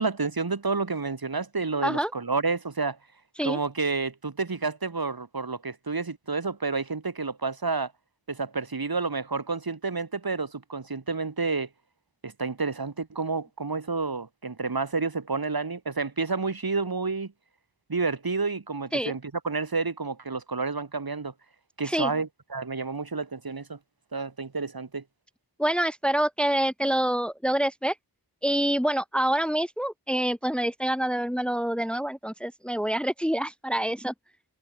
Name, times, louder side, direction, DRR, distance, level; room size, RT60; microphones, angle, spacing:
voice 1, 0.0-3.0 3.4-7.9 8.3-11.7 12.2-17.3 17.9-21.3 21.8-23.8 24.1-25.0, right 4 dB, 65° right, 3.7 m, -30 dB
voice 2, 25.6-27.9 28.4-34.1, right 1 dB, 5° left, 1.5 m, -26 dB
wide cardioid pair, 70°, 39 cm